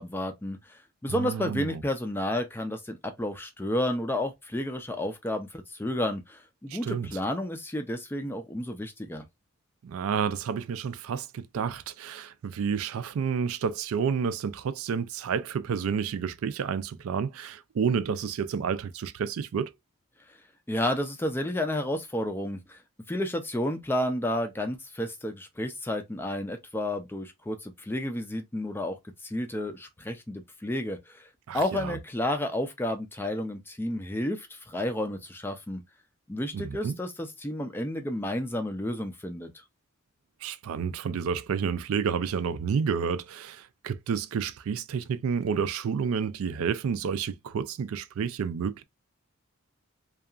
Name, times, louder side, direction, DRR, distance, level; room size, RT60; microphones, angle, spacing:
voice 1, 0.0-9.2 20.7-22.8 23.1-29.0 29.2-31.3 31.5-35.8 36.3-39.5, left 1 dB, 10° left, 0.3 m, -31 dB
voice 2, 1.1-1.8 6.7-7.1 9.8-19.7 31.5-32.0 36.5-37.0 40.4-48.8, right 6 dB, 75° right, 0.3 m, -30 dB
2.8 x 2.3 x 2.3 m
head